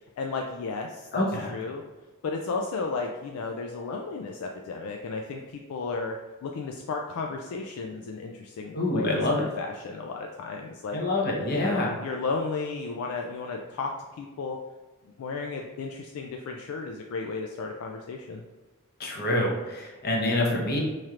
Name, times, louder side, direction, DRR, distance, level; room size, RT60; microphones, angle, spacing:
voice 1, 0.2-1.8 2.2-11.0 11.5-14.6 15.2-18.4, left 4 dB, 65° left, 2 dB, 0.3 m, -34 dB
voice 2, 1.1-1.5 8.7-9.5 10.9-11.9 19.0-20.8, left 1 dB, 45° left, -1 dB, 0.8 m, -26 dB
4.2 x 3.2 x 2.4 m, 1.2 s
head